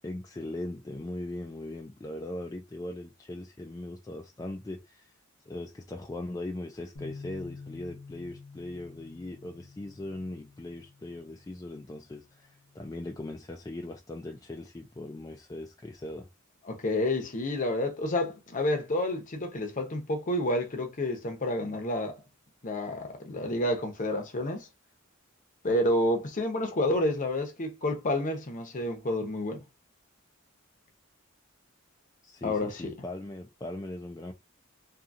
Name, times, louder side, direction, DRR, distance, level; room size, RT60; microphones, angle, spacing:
voice 1, 0.0-5.1 5.5-16.3 32.2-34.3, left 1 dB, 15° left, 0.3 m, -39 dB
Bass guitar, 7.0-13.2, left 4 dB, 70° left, 0.8 m, -49 dB
voice 2, 16.6-22.2 22.6-24.7 25.6-29.6 32.4-32.9, left 1 dB, 40° left, 0.7 m, -29 dB
2.7 x 2.6 x 2.4 m
head